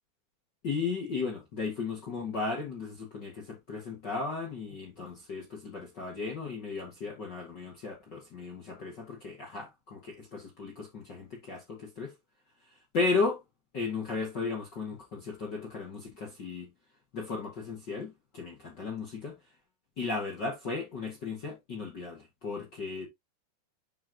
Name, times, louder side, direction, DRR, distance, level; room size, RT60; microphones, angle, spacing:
voice 1, 0.6-12.1 12.9-13.4 13.7-16.7 17.1-19.3 20.0-23.1, left 4 dB, 60° left, 1.1 m, -35 dB
8.7 x 3.1 x 3.8 m
omnidirectional pair, 4.9 m